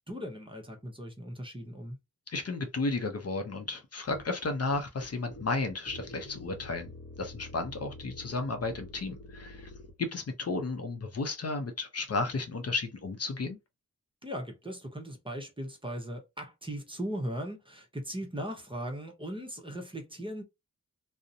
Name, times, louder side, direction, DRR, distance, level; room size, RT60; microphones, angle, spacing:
voice 1, 0.1-2.0 14.2-20.4, equal, 15° right, 0.7 m, -38 dB
voice 2, 2.3-6.9 7.2-9.7 10.0-13.6, left 3 dB, 50° left, 0.5 m, -33 dB
sound 1, 4.1-10.0, left 1 dB, 35° left, 0.9 m, -47 dB
2.5 x 2.0 x 2.6 m
wide cardioid pair, 75°, 32 cm